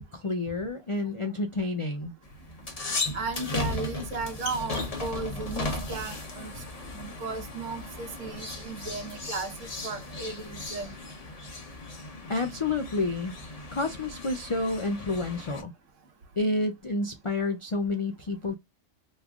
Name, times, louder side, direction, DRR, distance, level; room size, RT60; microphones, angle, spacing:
voice 1, 0.0-2.1 12.3-13.3 13.7-15.7 16.4-18.6, left 2 dB, 55° left, 0.3 m, -29 dB
sound 1, 2.2-15.6, left 2 dB, 35° left, 0.8 m, -36 dB
voice 2, 3.1-6.6 6.9-10.9, right 4 dB, 80° right, 1.3 m, -35 dB
3.6 x 3.1 x 2.3 m
omnidirectional pair, 1.3 m